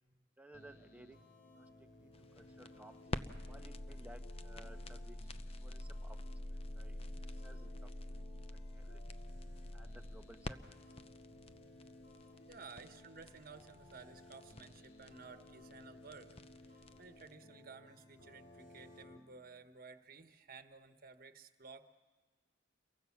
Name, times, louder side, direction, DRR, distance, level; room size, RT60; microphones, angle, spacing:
voice 1, 0.4-1.3 1.6-2.1 2.4-3.0 3.5-5.3 5.6-7.0 7.4-8.2 8.7-9.0 9.7-10.6, right 1 dB, 10° right, 6 dB, 1.1 m, -58 dB
sound 1, 0.5-19.2, left 1 dB, 85° left, 3.3 m, -58 dB
sound 2, 2.1-17.3, left 1 dB, 30° left, 0.7 m, -47 dB
voice 2, 12.5-16.3 16.6-21.8, right 4 dB, 50° right, 8 dB, 1.3 m, -55 dB
29.5 x 23.0 x 6.0 m, 1.4 s
head